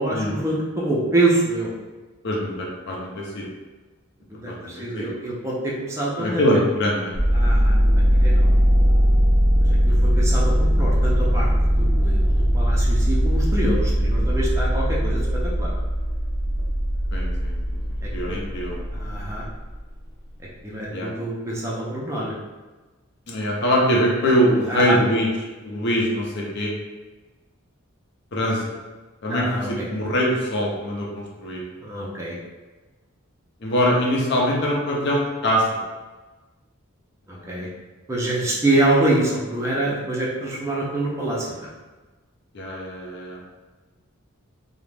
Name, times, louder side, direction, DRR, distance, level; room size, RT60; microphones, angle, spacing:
voice 1, 0.0-1.7 4.3-6.4 7.3-7.8 8.1-8.5 9.6-15.7 18.0-18.4 18.9-19.5 20.6-22.3 24.7-25.0 29.3-29.7 31.8-32.4 37.3-37.7 38.1-41.7, right 1 dB, 15° right, -5 dB, 0.4 m, -25 dB
voice 2, 2.2-3.5 4.5-5.1 6.2-7.1 17.1-17.5 18.1-18.9 20.9-21.1 23.3-25.3 25.6-26.7 28.3-28.6 29.2-31.6 33.6-35.8 37.3-37.6 42.5-43.4, equal, 55° left, -3 dB, 0.6 m, -23 dB
sound 1, 7.1-19.8, equal, 65° right, 0.5 m, -20 dB
2.4 x 2.1 x 3.2 m, 1.2 s
head